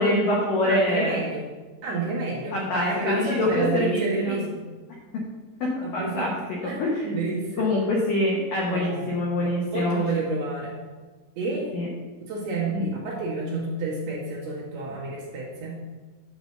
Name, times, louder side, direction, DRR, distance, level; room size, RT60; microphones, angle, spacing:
voice 1, 0.0-1.2 2.5-4.4 5.6-7.1 7.6-10.0 11.7-11.9 12.7-12.9, left 1 dB, 85° left, -3 dB, 1.9 m, -25 dB
voice 2, 0.7-1.5 1.8-4.6 5.8-6.3 6.6-6.8 7.0-7.6 8.6-9.1 9.7-10.8 11.4-11.7 12.3-15.7, right 3 dB, 60° right, -5 dB, 3.1 m, -29 dB
9.5 x 4.0 x 6.6 m, 1.3 s
omnidirectional pair, 5.9 m